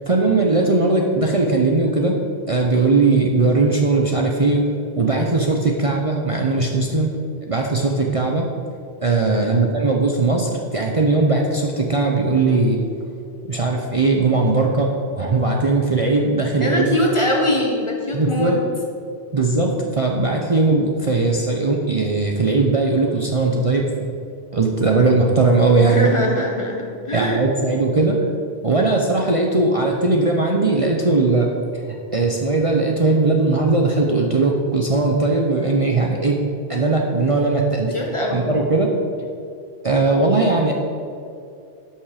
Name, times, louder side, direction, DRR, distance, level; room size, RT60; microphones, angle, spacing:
voice 1, 0.1-2.2 2.5-7.1 7.5-8.5 9.0-12.8 13.5-17.0 18.1-18.6 19.3-24.1 24.5-26.1 27.1-28.2 28.6-31.5 31.7-36.4 36.7-37.9 38.3-38.9 39.8-40.7, right 3 dB, 35° right, 0 dB, 0.8 m, -19 dB
voice 2, 16.6-18.6 25.8-27.4 37.9-38.5, left 1 dB, 30° left, -1 dB, 1.5 m, -22 dB
11.5 x 6.0 x 4.9 m, 2.5 s
omnidirectional pair, 1.1 m